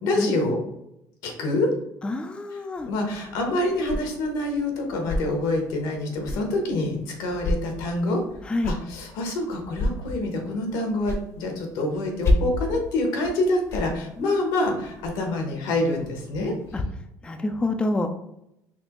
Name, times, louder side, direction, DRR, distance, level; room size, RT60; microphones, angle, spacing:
voice 1, 0.0-0.6 1.2-1.7 2.9-8.2 8.7-16.5, left 2 dB, 80° left, 2 dB, 1.1 m, -26 dB
voice 2, 2.0-2.9 8.4-8.7 14.2-14.7 16.7-16.8 17.2-18.1, left 2 dB, 15° left, 6 dB, 0.4 m, -28 dB
sound 1, 2.8-16.8, left 1 dB, 40° left, 0.7 m, -32 dB
4.3 x 2.8 x 3.0 m, 0.81 s
supercardioid pair, 100°, 7 cm